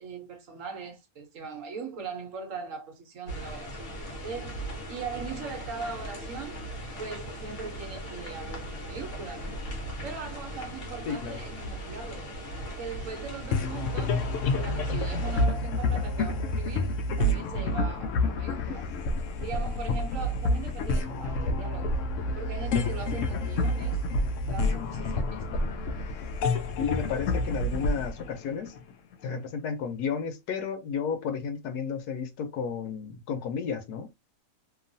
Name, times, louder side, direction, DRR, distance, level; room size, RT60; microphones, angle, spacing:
voice 1, 0.0-6.6 7.0-9.6 10.0-12.4 12.8-14.3 14.5-18.9 19.4-22.0 22.3-24.0 24.5-25.6, right 4 dB, 60° right, 1.1 m, -40 dB
sound 1, 3.3-15.5, equal, 55° left, 1.2 m, -39 dB
voice 2, 11.1-11.4 26.8-28.7 29.2-34.1, left 6 dB, 85° left, 1.2 m, -32 dB
sound 2, 13.5-29.1, left 2 dB, 70° left, 0.8 m, -28 dB
2.9 x 2.4 x 2.6 m
omnidirectional pair, 1.6 m